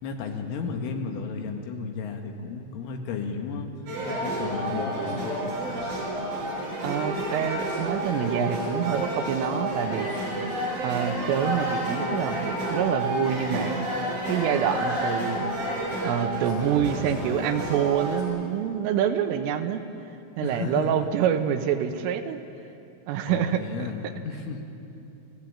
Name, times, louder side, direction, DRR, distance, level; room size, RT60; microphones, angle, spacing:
voice 1, 0.0-3.7 4.0-5.4 20.4-21.1 23.3-24.6, left 5 dB, 75° left, 3 dB, 4.2 m, -33 dB
sound 1, 3.9-18.2, right 1 dB, 50° right, 7.4 m, -30 dB
voice 2, 6.8-10.1 10.8-13.8 14.3-15.5 16.0-19.8 20.4-22.4 23.1-23.6, right 9 dB, 90° right, 7 dB, 3.7 m, -26 dB
29.0 x 15.5 x 8.7 m, 2.7 s
omnidirectional pair, 5.8 m